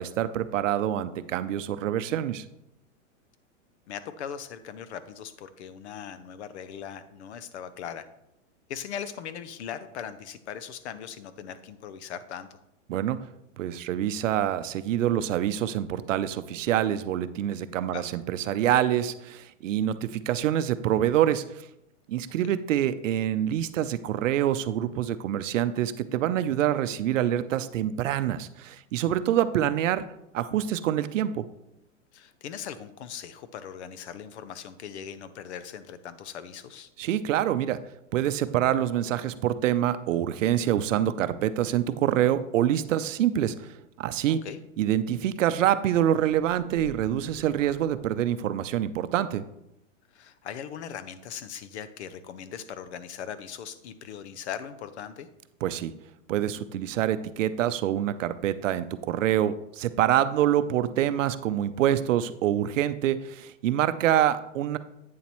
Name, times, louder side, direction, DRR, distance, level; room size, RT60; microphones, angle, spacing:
voice 1, 0.0-2.4 12.9-13.2 13.6-21.6 22.1-30.1 30.3-31.5 37.0-37.8 38.1-44.4 44.8-49.4 55.6-55.9 56.3-64.8, right 11 dB, 75° right, 13 dB, 0.6 m, -26 dB
voice 2, 3.9-8.1 8.7-12.6 17.9-18.0 22.4-22.6 32.1-36.9 44.3-44.6 50.1-55.3, left 8 dB, 60° left, 13 dB, 0.7 m, -39 dB
sound 1, 46.7-48.8, equal, 80° left, 3.1 m, -49 dB
8.6 x 7.1 x 3.0 m, 0.86 s
supercardioid pair, 170°, 38 cm